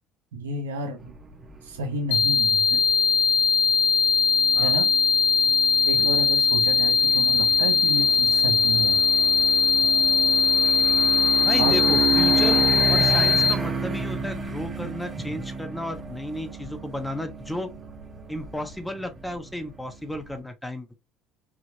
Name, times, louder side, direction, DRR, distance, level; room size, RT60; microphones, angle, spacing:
voice 1, 0.3-1.1 1.6-2.8 4.6-4.9 5.8-9.0 11.6-11.8, right 3 dB, 90° right, 1.0 m, -31 dB
sound 1, 1.1-20.4, right 5 dB, 30° right, 1.1 m, -32 dB
sound 2, 2.1-13.5, left 5 dB, 80° left, 0.6 m, -20 dB
voice 2, 11.4-12.6 12.9-17.7 18.3-20.9, left 1 dB, 10° left, 1.0 m, -33 dB
5.0 x 2.8 x 2.8 m
hypercardioid pair, 65°, 0 cm